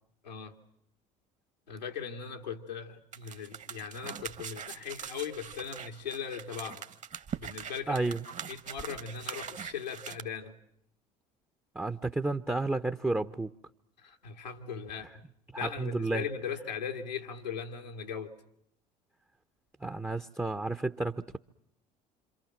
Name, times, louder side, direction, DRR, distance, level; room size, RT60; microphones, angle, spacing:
voice 1, 0.2-0.5 1.7-6.8 7.4-8.0 8.4-10.5 14.0-15.2 15.6-18.3, left 7 dB, 90° left, 2 dB, 2.2 m, -39 dB
sound 1, 3.1-10.2, right 7 dB, 35° right, 1.9 m, -42 dB
voice 2, 7.9-8.2 11.7-13.5 15.5-16.2 19.8-21.4, right 2 dB, 10° right, 6 dB, 1.2 m, -31 dB
27.5 x 26.5 x 7.4 m, 0.74 s
figure-of-eight pair, 65°, 21 cm